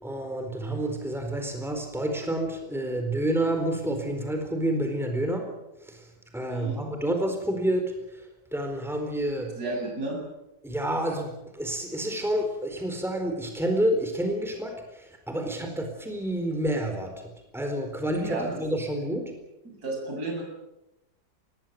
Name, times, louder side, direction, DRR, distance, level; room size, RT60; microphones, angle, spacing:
voice 1, 0.0-5.5 5.8-8.3 8.5-9.6 10.6-17.1 17.5-19.3, right 1 dB, ahead, 4 dB, 4.2 m, -29 dB
voice 2, 6.5-6.8 9.6-10.2 18.2-18.6 19.7-20.4, right 2 dB, 65° right, 0 dB, 8.3 m, -32 dB
25.0 x 20.5 x 7.8 m, 0.93 s
omnidirectional pair, 1.8 m